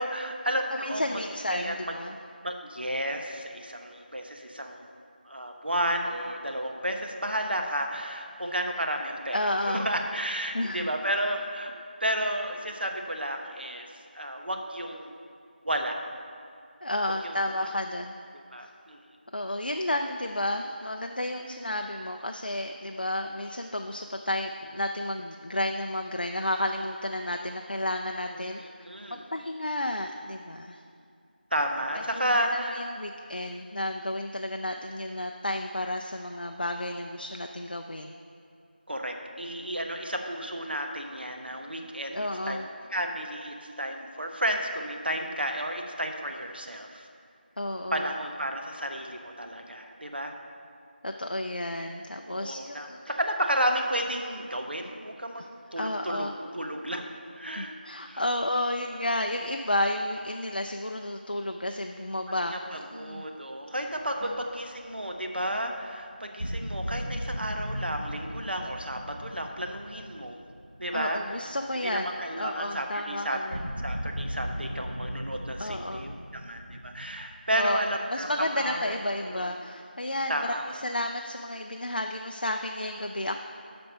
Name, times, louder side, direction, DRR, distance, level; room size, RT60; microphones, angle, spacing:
voice 1, 0.0-1.2 1.5-1.9 2.4-4.9 5.2-11.7 12.0-15.1 15.6-16.0 17.2-17.4 18.3-19.0 28.3-29.3 31.5-32.8 38.9-42.2 42.5-42.6 42.9-47.1 47.9-50.3 52.3-55.5 55.7-56.3 56.5-57.0 57.3-57.7 58.0-58.2 62.4-70.4 70.8-71.2 71.7-78.3 78.6-79.0 79.3-79.5 80.3-80.8, equal, 70° right, 3 dB, 1.0 m, -32 dB
voice 2, 0.7-2.2 9.3-9.9 10.5-10.9 16.8-18.2 18.6-18.7 19.3-28.6 29.1-30.8 32.3-38.1 42.1-42.7 47.6-48.1 51.0-53.2 55.8-56.3 57.5-63.2 64.2-64.4 70.9-73.6 75.6-76.1 77.5-77.8 78.1-83.4, left 1 dB, 60° left, 4 dB, 0.4 m, -32 dB
sound 1, 63.8-64.8 66.4-71.5 71.7-72.0 73.5-77.2, equal, 10° right, 1.0 m, -37 dB
7.9 x 6.1 x 5.3 m, 2.4 s
figure-of-eight pair, 175°, 6 cm